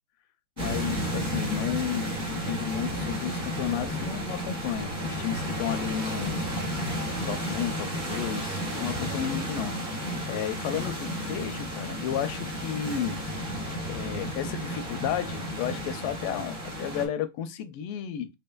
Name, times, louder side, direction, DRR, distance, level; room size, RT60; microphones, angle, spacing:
voice 1, 0.6-6.4 7.3-13.2 13.9-18.3, left 9 dB, 90° left, 1.5 m, -33 dB
sound 1, 0.6-17.1, equal, 25° right, 1.4 m, -32 dB
4.3 x 3.6 x 2.2 m
omnidirectional pair, 2.4 m